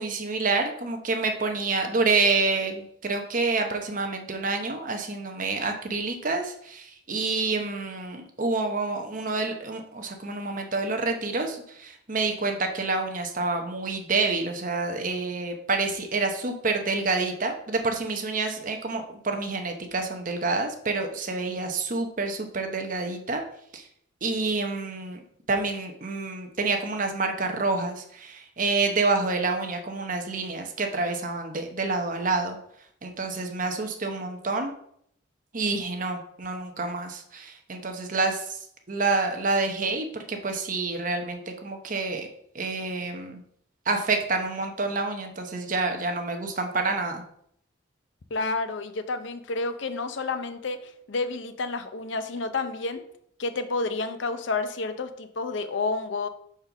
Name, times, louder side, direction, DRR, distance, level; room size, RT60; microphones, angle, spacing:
voice 1, 0.0-23.4 23.7-23.9 24.2-25.2 25.5-32.6 33.0-34.7 35.5-38.6 38.9-42.3 42.5-43.4 43.8-47.2, right 3 dB, 40° right, 4 dB, 0.9 m, -28 dB
voice 2, 48.3-53.0 53.4-56.3, left 3 dB, 70° left, 10 dB, 0.6 m, -30 dB
5.2 x 4.4 x 6.0 m, 0.69 s
head